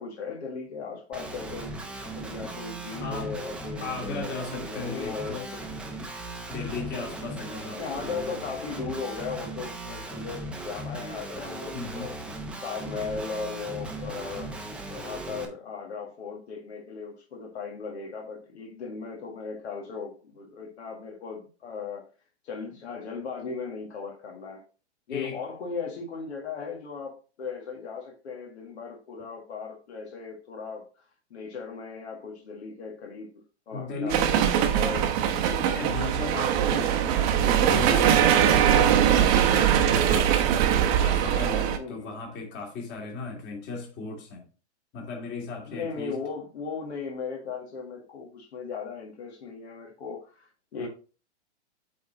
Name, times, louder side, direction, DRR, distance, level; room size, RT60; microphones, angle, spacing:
voice 1, 0.0-1.7 2.2-5.6 6.8-7.0 7.7-12.2 12.6-14.5 14.9-22.1 22.4-24.6 25.1-30.9 31.3-35.3 41.8-42.1 43.3-43.4 45.7-50.9, left 5 dB, 65° left, 1.9 m, -37 dB
Guitar, 1.1-15.5, right 2 dB, 5° right, 0.8 m, -38 dB
voice 2, 3.0-3.4 3.8-5.5 6.5-8.4 11.7-12.1 25.1-25.4 33.7-34.6 35.3-40.5 41.0-44.4 44.9-46.2 50.8-50.9, left 3 dB, 30° left, 2.5 m, -36 dB
sound 1, 34.1-41.8, right 9 dB, 30° right, 0.9 m, -22 dB
8.3 x 4.1 x 4.0 m
hypercardioid pair, 140°, 35 cm